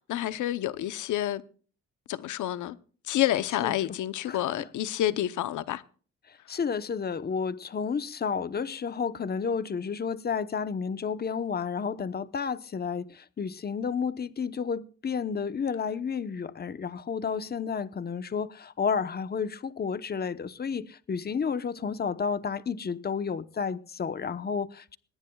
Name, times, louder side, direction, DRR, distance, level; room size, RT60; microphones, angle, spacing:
voice 1, 0.0-1.4 2.1-2.8 3.0-5.8, left 13 dB, 75° left, 0.9 m, -29 dB
voice 2, 6.3-25.0, left 6 dB, 30° left, 1.0 m, -31 dB
20.5 x 18.0 x 2.3 m
cardioid pair, 90°, 30 cm